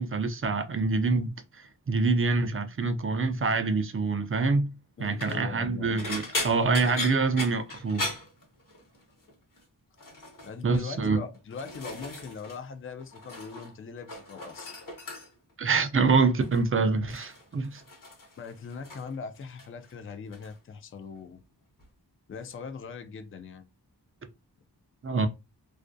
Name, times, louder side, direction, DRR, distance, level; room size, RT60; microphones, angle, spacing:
voice 1, 0.0-4.7 5.0-8.1 10.6-11.2 15.6-17.8 25.0-25.3, right 4 dB, 35° right, 0.4 m, -26 dB
sound 1, 5.0-5.4 6.0-9.0 9.3-9.6 10.0-10.5 11.2-12.6 12.9-13.7 14.0-15.5 16.4-16.7 17.1-19.1 19.4-19.9 20.3-20.5 21.8-21.9, left 2 dB, 50° left, 0.9 m, -38 dB
voice 2, 5.0-6.2 10.4-14.7 18.4-21.4 22.3-23.7, left 5 dB, 30° left, 0.4 m, -41 dB
2.4 x 2.1 x 2.5 m
cardioid pair, 55°, 42 cm